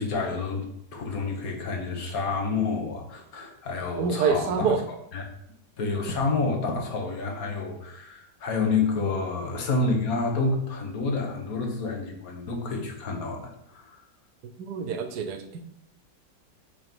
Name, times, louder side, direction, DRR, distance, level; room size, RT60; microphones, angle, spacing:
voice 1, 0.0-4.7 5.1-5.3 5.8-14.0, left 3 dB, 55° left, 2 dB, 1.6 m, -29 dB
voice 2, 4.0-4.8 14.6-15.7, right 5 dB, 65° right, 7 dB, 1.2 m, -26 dB
6.9 x 3.8 x 5.3 m, 0.74 s
omnidirectional pair, 2.0 m